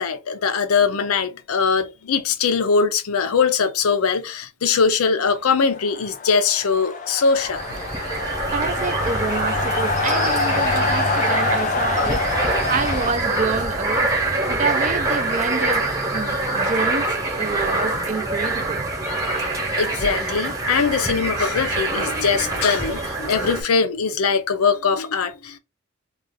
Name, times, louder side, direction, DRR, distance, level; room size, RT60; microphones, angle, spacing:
voice 1, 0.0-7.6 19.1-19.3 19.8-25.6, left 5 dB, 90° left, 0.5 m, -21 dB
sound 1, 5.4-13.1, left 4 dB, 35° left, 0.4 m, -26 dB
sound 2, 7.3-23.6, right 2 dB, 15° right, 0.8 m, -25 dB
voice 2, 8.5-12.2 12.7-14.1 14.5-18.8, right 4 dB, 35° right, 0.3 m, -27 dB
2.4 x 2.4 x 3.6 m
head